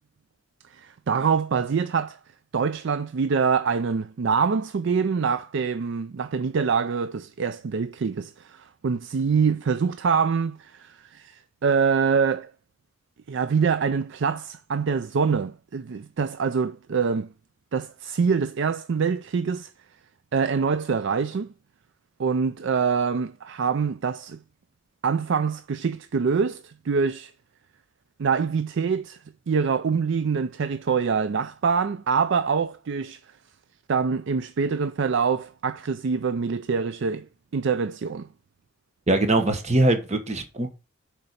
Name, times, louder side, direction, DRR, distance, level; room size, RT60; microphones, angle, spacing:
voice 1, 0.7-2.2 2.5-12.5 13.3-17.3 17.7-19.7 20.3-21.5 22.2-24.4 25.0-27.3 28.2-29.2 29.5-33.2 33.9-37.3 37.5-38.3, right 5 dB, 55° right, 0.4 m, -25 dB
voice 2, 39.1-40.7, right 2 dB, 30° right, 1.1 m, -22 dB
6.9 x 4.5 x 6.6 m
head